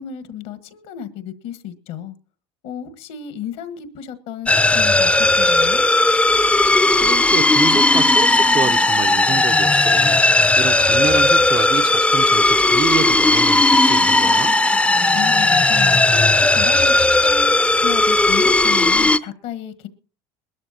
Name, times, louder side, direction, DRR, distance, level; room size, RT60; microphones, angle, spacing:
voice 1, 0.0-2.1 2.6-5.8 15.1-19.9, left 9 dB, 70° left, 1.5 m, -33 dB
sound 1, 4.5-19.2, left 2 dB, 10° left, 0.6 m, -16 dB
voice 2, 6.9-10.3 10.6-14.6, right 7 dB, 35° right, 0.6 m, -27 dB
21.5 x 12.5 x 2.9 m
supercardioid pair, 90°, 13 cm